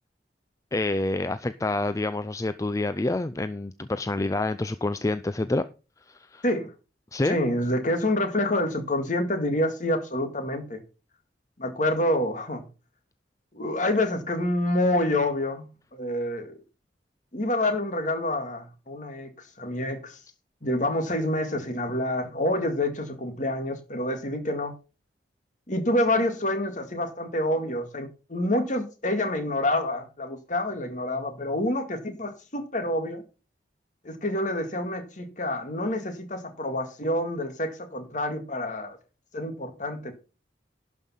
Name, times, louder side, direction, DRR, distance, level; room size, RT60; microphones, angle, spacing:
voice 1, 0.7-5.7 6.1-6.4 7.1-7.4, left 2 dB, 20° left, 0.4 m, -27 dB
voice 2, 7.2-10.8 11.6-12.6 13.5-16.6 17.3-19.3 19.6-20.2 20.6-24.7 25.7-33.2 34.0-39.0 39.3-40.1, left 1 dB, 45° left, 2.0 m, -27 dB
11.5 x 5.4 x 5.7 m
head